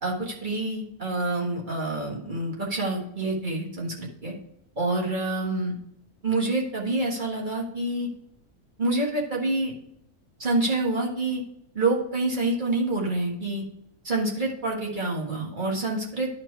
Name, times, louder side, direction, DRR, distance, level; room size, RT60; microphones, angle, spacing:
voice 1, 0.0-4.3 4.8-5.7 6.2-8.1 8.8-9.7 10.4-11.4 11.7-13.6 14.0-16.3, right 2 dB, 35° right, -2 dB, 1.7 m, -27 dB
11.5 x 4.5 x 4.5 m, 0.77 s
omnidirectional pair, 1.6 m